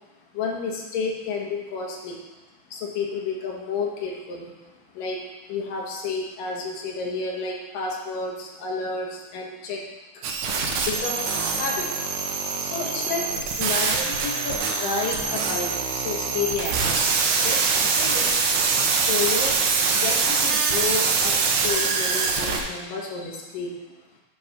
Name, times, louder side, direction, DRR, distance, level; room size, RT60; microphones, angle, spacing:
voice 1, 0.3-2.2 2.7-9.8 10.1-10.4 10.8-11.9 12.5-18.5 19.0-19.6 19.9-23.8, left 4 dB, 70° left, -1 dB, 2.8 m, -31 dB
sound 1, 10.2-22.6, right 5 dB, 70° right, 2.1 m, -24 dB
11.0 x 4.0 x 5.9 m, 1.1 s
omnidirectional pair, 4.2 m